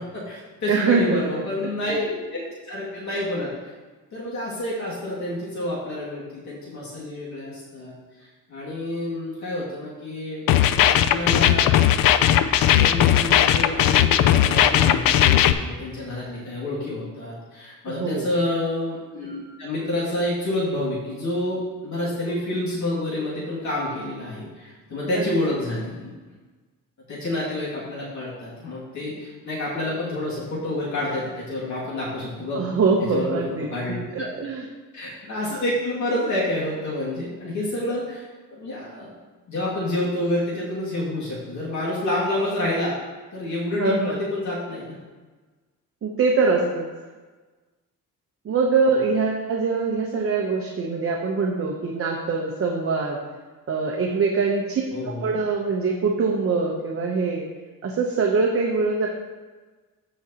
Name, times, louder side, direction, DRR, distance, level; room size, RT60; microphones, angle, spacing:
voice 1, 0.0-3.7 4.1-7.9 8.2-10.4 11.1-11.7 12.7-26.2 27.1-32.6 33.0-33.4 33.7-34.3 34.9-39.1 39.5-43.0 43.3-45.0 54.9-55.4, left 1 dB, 55° left, -7 dB, 2.3 m, -28 dB
voice 2, 0.7-1.4 1.9-2.0 17.9-18.3 25.1-25.2 32.6-33.7 34.1-34.6 43.8-44.2 46.0-46.9 48.4-53.2 53.7-57.5 57.8-59.1, right 4 dB, 40° right, -1 dB, 0.8 m, -23 dB
sound 1, 10.5-15.5, left 11 dB, 75° left, 0.5 m, -17 dB
14.5 x 5.0 x 2.8 m, 1.3 s
cardioid pair, 155°, 35 cm